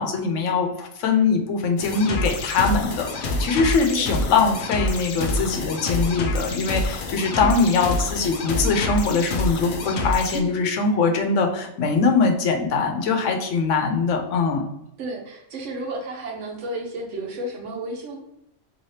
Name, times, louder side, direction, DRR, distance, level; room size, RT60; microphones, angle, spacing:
voice 1, 0.0-14.6, left 4 dB, 80° left, 4 dB, 1.0 m, -22 dB
sound 1, 1.8-10.4, left 2 dB, 60° left, 0.6 m, -27 dB
voice 2, 15.0-18.3, right 2 dB, 75° right, 0 dB, 1.2 m, -32 dB
3.0 x 2.7 x 3.2 m, 0.81 s
omnidirectional pair, 1.2 m